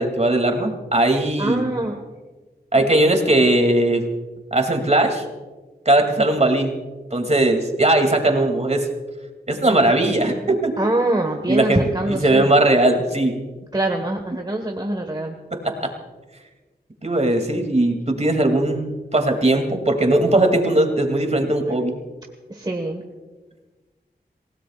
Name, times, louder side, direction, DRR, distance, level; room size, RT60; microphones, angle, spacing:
voice 1, 0.0-1.6 2.7-4.0 4.5-5.2 5.8-6.8 7.1-8.9 9.5-10.7 11.5-13.5 15.5-15.9 17.0-22.0, right 1 dB, 40° right, 4 dB, 2.8 m, -19 dB
voice 2, 1.4-2.0 10.8-12.5 13.7-15.4 21.6-21.7 22.5-23.0, right 1 dB, 25° right, 2 dB, 1.6 m, -24 dB
28.0 x 17.5 x 2.5 m, 1.3 s
wide cardioid pair, 55°, 17 cm